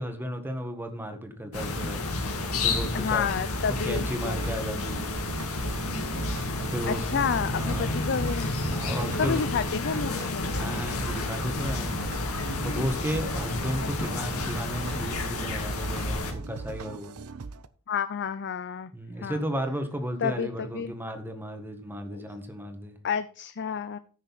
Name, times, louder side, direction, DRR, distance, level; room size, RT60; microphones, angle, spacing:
voice 1, 0.0-2.0 2.6-3.3 3.7-5.1 6.6-8.0 8.7-9.4 10.5-12.1 12.6-17.1 18.9-23.0, equal, 10° right, 6 dB, 1.6 m, -34 dB
sound 1, 1.5-16.3, left 2 dB, 80° left, 2.2 m, -30 dB
voice 2, 2.9-4.4 6.9-8.5 9.2-10.5 13.8-14.2 17.9-18.9 19.2-19.4 20.2-20.9 22.1-22.2 23.0-24.0, left 6 dB, 55° left, 12 dB, 0.5 m, -30 dB
sound 2, 3.9-17.7, right 4 dB, 80° right, 0.7 m, -40 dB
14.0 x 6.4 x 4.2 m, 0.40 s
head